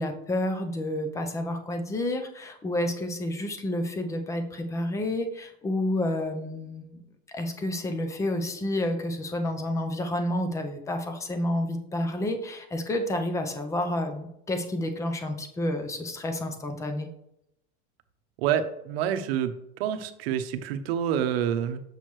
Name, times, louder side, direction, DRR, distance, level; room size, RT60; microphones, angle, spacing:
voice 1, 0.0-7.0 7.3-17.1, left 1 dB, 10° left, 6 dB, 0.5 m, -30 dB
voice 2, 18.4-19.5 19.8-21.8, right 9 dB, 65° right, 10 dB, 0.8 m, -27 dB
7.0 x 6.3 x 3.1 m, 0.79 s
supercardioid pair, 160°, 33 cm